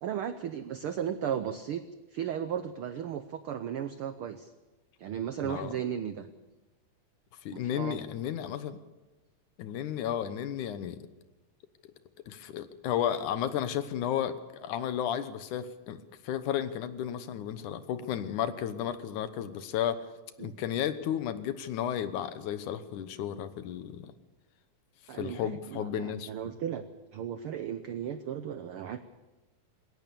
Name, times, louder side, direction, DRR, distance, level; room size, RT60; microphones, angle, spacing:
voice 1, 0.0-1.8 2.1-4.5 5.0-6.3 7.5-8.0 10.1-10.2 20.4-20.5 25.1-26.8 27.1-29.0, right 9 dB, 85° right, 10 dB, 1.2 m, -35 dB
voice 2, 5.4-5.7 7.4-8.8 9.6-11.0 12.3-20.0 20.4-24.1 25.1-26.3, left 10 dB, 80° left, 12 dB, 2.5 m, -33 dB
21.0 x 18.0 x 7.0 m, 1.1 s
omnidirectional pair, 3.6 m